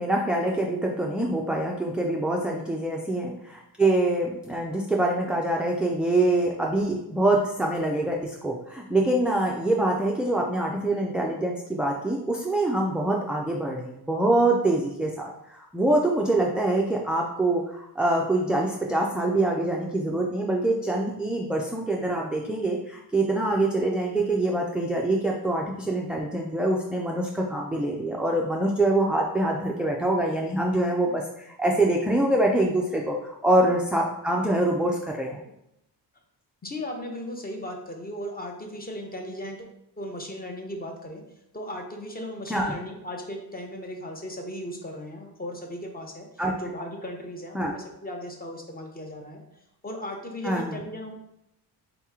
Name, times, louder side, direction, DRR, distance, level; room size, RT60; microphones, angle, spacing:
voice 1, 0.0-3.3 3.8-35.4 42.5-42.7 46.4-46.5 47.5-47.7 50.4-50.8, right 1 dB, 5° right, -2 dB, 0.3 m, -25 dB
voice 2, 36.6-39.7 40.0-41.2 41.5-46.3 46.6-49.4 49.8-51.1, left 1 dB, 20° left, 2 dB, 0.7 m, -36 dB
3.9 x 2.9 x 3.6 m, 0.81 s
cardioid pair, 100°, 41 cm